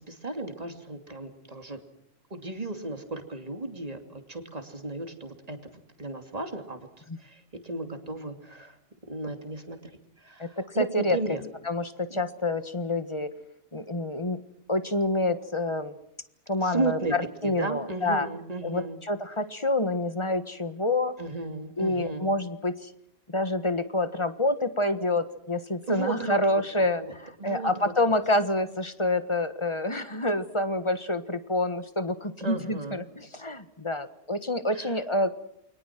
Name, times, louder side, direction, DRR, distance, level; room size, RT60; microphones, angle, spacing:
voice 1, 0.0-1.8 2.3-8.8 9.0-9.8 10.2-11.4 12.1-12.3 16.6-17.1 17.4-19.0 21.2-22.3 25.9-28.1 32.4-33.0 34.7-35.0, right 3 dB, 35° right, 5 dB, 2.9 m, -35 dB
voice 2, 10.4-11.2 11.6-13.3 13.7-14.4 14.7-15.9 16.5-17.0 17.4-18.3 18.6-21.2 21.8-22.9 23.3-35.3, left 1 dB, 25° left, 11 dB, 1.5 m, -27 dB
29.0 x 23.5 x 6.0 m, 0.75 s
omnidirectional pair, 1.2 m